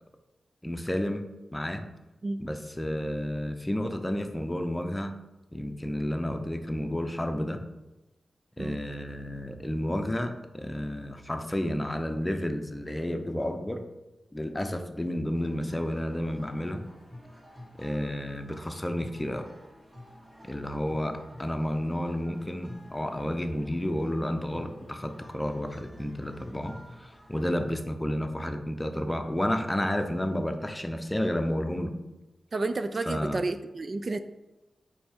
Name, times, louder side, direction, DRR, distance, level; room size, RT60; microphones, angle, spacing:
voice 1, 0.6-1.3 1.5-1.8 2.4-5.1 5.5-7.6 8.6-13.8 14.3-16.8 17.8-19.5 20.5-31.9 33.1-33.4, left 1 dB, 15° left, 6 dB, 0.7 m, -31 dB
sound 1, 15.3-27.8, equal, 20° right, 1.6 m, -51 dB
voice 2, 32.5-34.2, right 3 dB, 45° right, 9 dB, 0.3 m, -31 dB
5.3 x 4.7 x 4.5 m, 1.0 s
cardioid pair, 75°, 0 cm